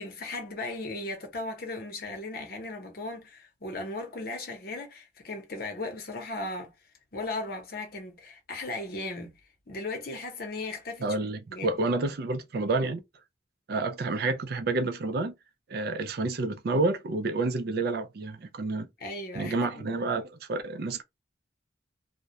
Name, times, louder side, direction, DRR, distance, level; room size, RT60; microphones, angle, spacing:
voice 1, 0.0-6.7 7.1-9.4 9.7-11.2 11.5-11.9 19.0-19.9 20.9-21.0, left 2 dB, 55° left, 0.8 m, -37 dB
voice 2, 11.0-13.0 13.7-15.3 15.7-18.9 19.3-21.0, right 3 dB, 55° right, 0.4 m, -29 dB
2.3 x 2.1 x 2.7 m
head